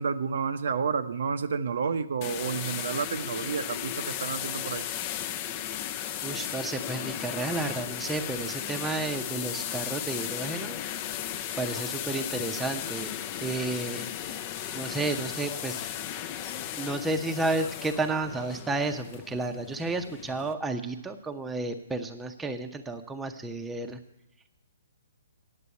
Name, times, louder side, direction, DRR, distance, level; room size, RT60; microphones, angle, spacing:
voice 1, 0.0-4.9, right 6 dB, 65° right, 9 dB, 0.7 m, -30 dB
sound 1, 2.2-20.5, left 11 dB, 35° left, 0.6 m, -35 dB
voice 2, 6.2-10.8 11.6-13.1 13.4-14.1 14.7-15.9 16.7-24.0, right 2 dB, 10° right, 5 dB, 0.7 m, -32 dB
9.8 x 7.5 x 8.2 m, 0.91 s
hypercardioid pair, 140°, 0 cm